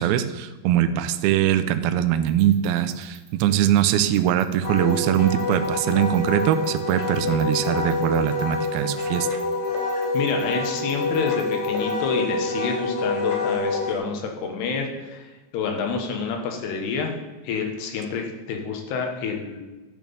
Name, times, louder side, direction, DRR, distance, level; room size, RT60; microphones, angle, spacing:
voice 1, 0.0-9.3, right 11 dB, 85° right, 10 dB, 2.2 m, -22 dB
sound 1, 2.3-11.9, right 7 dB, 50° right, 3.9 m, -50 dB
Wind instrument woodwind instrument, 4.6-14.0, left 3 dB, 55° left, 2.1 m, -27 dB
voice 2, 10.0-17.1 17.4-19.6, left 5 dB, 75° left, 3 dB, 3.4 m, -28 dB
10.5 x 6.1 x 7.0 m, 1.2 s
omnidirectional pair, 4.9 m